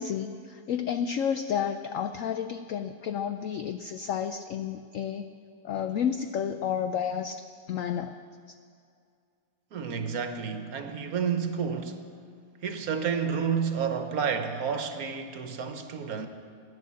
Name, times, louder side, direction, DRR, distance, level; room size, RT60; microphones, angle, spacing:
voice 1, 0.0-5.3 5.6-8.2, left 8 dB, 75° left, 9 dB, 0.7 m, -31 dB
voice 2, 9.7-12.0 12.6-16.3, right 6 dB, 60° right, 7 dB, 1.3 m, -30 dB
15.0 x 10.0 x 7.5 m, 2.3 s
omnidirectional pair, 1.9 m